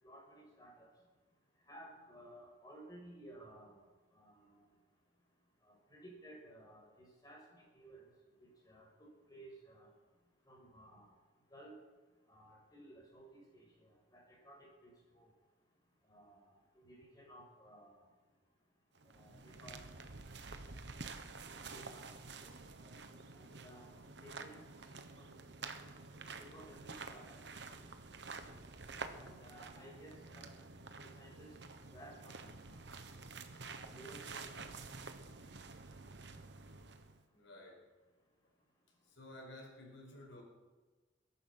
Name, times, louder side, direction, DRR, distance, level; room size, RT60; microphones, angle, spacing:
voice 1, 0.0-0.9 1.7-3.8 4.1-4.6 5.6-8.1 8.4-8.9 9.3-9.9 10.5-11.1 11.5-11.7 12.3-15.3 16.0-18.1 19.1-19.8 20.3-20.4 21.5-22.0 22.4-22.5 22.8-22.9 23.3-23.8 24.2-24.9 25.2-25.3 25.6-25.7 26.4-27.4 29.1-30.5 31.0-31.5 31.9-33.1 33.7-35.0, right 1 dB, 20° left, -2 dB, 6.3 m, -57 dB
sound 1, 18.9-37.2, right 4 dB, 60° right, 1.2 m, -50 dB
voice 2, 37.3-37.8 39.1-40.4, left 1 dB, 75° left, 1 dB, 5.1 m, -53 dB
21.5 x 11.0 x 5.8 m, 1.3 s
head